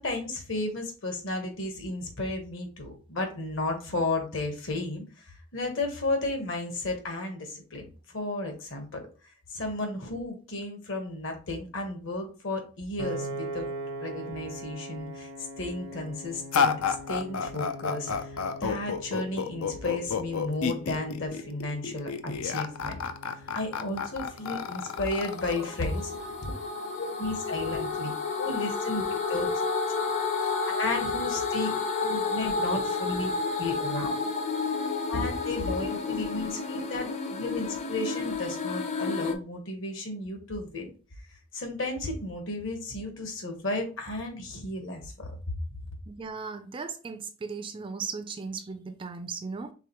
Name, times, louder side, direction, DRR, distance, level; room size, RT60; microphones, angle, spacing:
voice 1, 0.0-7.8 8.1-9.0 9.5-13.7 14.0-15.3 15.6-23.0 23.5-26.1 26.4-26.5 27.0-29.5 30.4-34.3 35.1-40.9 41.5-45.4 45.7-45.8, left 2 dB, 60° left, 1.3 m, -33 dB
Piano, 13.0-25.2, right 1 dB, 70° right, 0.6 m, -42 dB
sound 1, 16.5-26.5, left 6 dB, 85° left, 0.5 m, -31 dB
sound 2, 24.2-39.3, left 4 dB, 30° left, 0.5 m, -31 dB
voice 2, 46.1-49.7, right 5 dB, 25° right, 0.3 m, -37 dB
4.8 x 3.6 x 3.0 m
head